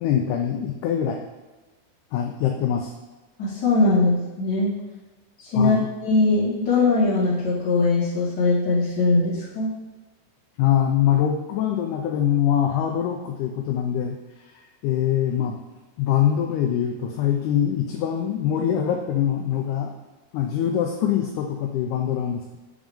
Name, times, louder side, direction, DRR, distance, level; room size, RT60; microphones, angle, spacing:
voice 1, 0.0-1.2 2.1-2.9 5.6-5.9 10.6-14.2 14.8-15.6 16.0-19.9 20.3-22.6, left 10 dB, 80° left, 2 dB, 1.9 m, -23 dB
voice 2, 3.4-4.7 5.4-9.7, left 3 dB, 40° left, -7 dB, 2.0 m, -21 dB
7.2 x 3.7 x 3.5 m, 1.2 s
omnidirectional pair, 3.9 m